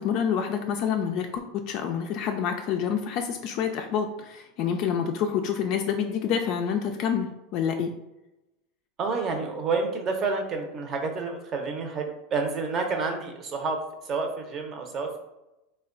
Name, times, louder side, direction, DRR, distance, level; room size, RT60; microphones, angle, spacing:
voice 1, 0.0-7.9, left 7 dB, 50° left, 4 dB, 0.3 m, -27 dB
voice 2, 9.0-15.2, right 4 dB, 35° right, 4 dB, 0.7 m, -29 dB
3.2 x 2.2 x 3.7 m, 0.95 s
supercardioid pair, 130°, 0 cm